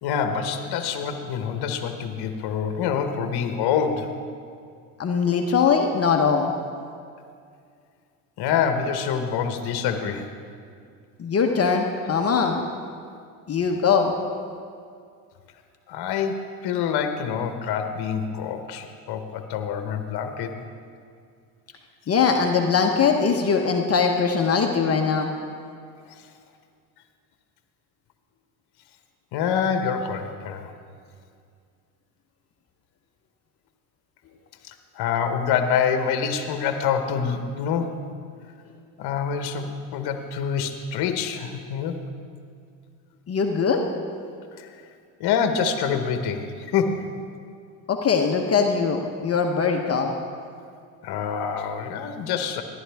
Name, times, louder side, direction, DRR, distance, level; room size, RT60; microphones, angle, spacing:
voice 1, 0.0-4.1 8.4-10.3 15.9-20.5 29.3-30.7 34.7-38.0 39.0-42.0 44.6-44.7 45.2-47.0 51.0-52.6, left 7 dB, 55° left, 7 dB, 1.1 m, -26 dB
voice 2, 5.0-6.5 11.2-12.7 13.5-14.1 22.1-25.3 43.3-43.8 47.9-50.1, left 5 dB, 30° left, 3 dB, 0.9 m, -21 dB
14.0 x 11.0 x 3.5 m, 2.2 s
supercardioid pair, 90°, 46 cm